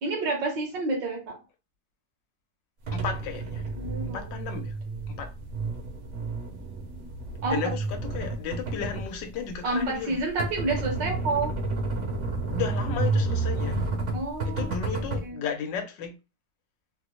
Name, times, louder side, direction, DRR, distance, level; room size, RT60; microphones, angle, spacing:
voice 1, 0.0-1.4 3.8-4.3 7.4-7.6 9.6-11.5 14.1-14.8 15.2-15.4, right 2 dB, 80° right, 1.9 m, -29 dB
voice 2, 2.9-3.6 4.1-4.8 5.1-5.3 7.5-10.2 12.5-13.8 14.4-16.1, left 7 dB, 85° left, 1.4 m, -34 dB
sound 1, 2.9-15.2, right 3 dB, 55° right, 0.9 m, -31 dB
4.2 x 2.0 x 2.9 m
omnidirectional pair, 1.9 m